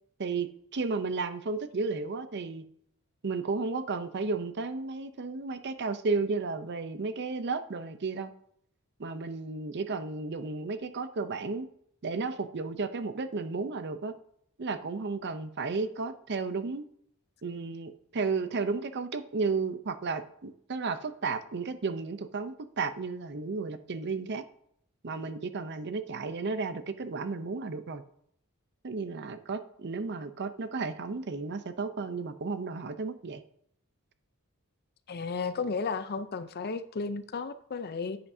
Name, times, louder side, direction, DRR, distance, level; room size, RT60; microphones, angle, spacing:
voice 1, 0.2-2.6 3.2-8.3 9.0-11.7 12.0-14.1 14.6-16.8 17.4-24.4 25.0-28.0 28.8-33.4, right 4 dB, 50° right, 11 dB, 0.6 m, -33 dB
voice 2, 35.1-38.2, left 4 dB, 45° left, 12 dB, 0.5 m, -33 dB
10.5 x 8.6 x 2.7 m, 0.69 s
head